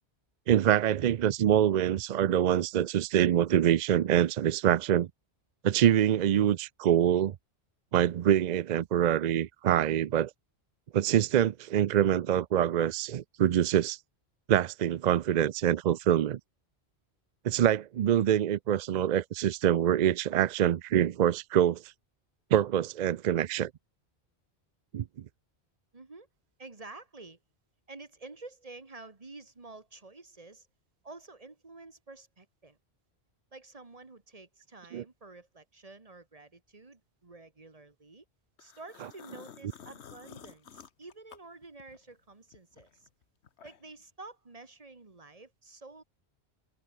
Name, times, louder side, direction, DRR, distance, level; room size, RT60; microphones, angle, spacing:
voice 1, 0.5-5.1 5.6-7.4 7.9-10.3 10.9-14.0 14.5-16.4 17.4-21.9 22.5-23.7 24.9-25.2 34.9-35.0, right 10 dB, 55° right, 0.5 m, -25 dB
voice 2, 25.9-26.3 26.6-27.4 27.9-30.7 31.0-32.8 33.5-38.2 38.6-43.1 43.6-46.0, right 3 dB, 35° right, 1.6 m, -50 dB
sound 1, 38.6-42.1 42.5-44.0, left 7 dB, 85° left, 1.3 m, -51 dB
omnidirectional pair, 1.1 m